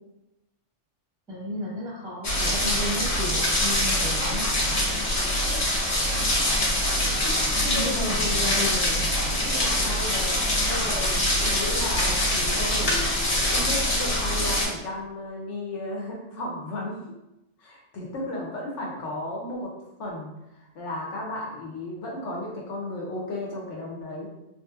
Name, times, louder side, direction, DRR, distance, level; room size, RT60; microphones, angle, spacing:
voice 1, 1.3-4.5 7.6-9.0, equal, 5° right, -5 dB, 0.6 m, -33 dB
sound 1, 2.2-14.7, left 1 dB, 45° left, 0.5 m, -24 dB
voice 2, 7.6-8.7 9.3-10.4 10.7-13.1 13.5-17.0 17.6-19.7 20.0-24.3, left 1 dB, 65° left, -2 dB, 0.9 m, -34 dB
3.2 x 2.7 x 2.3 m, 0.92 s
omnidirectional pair, 1.4 m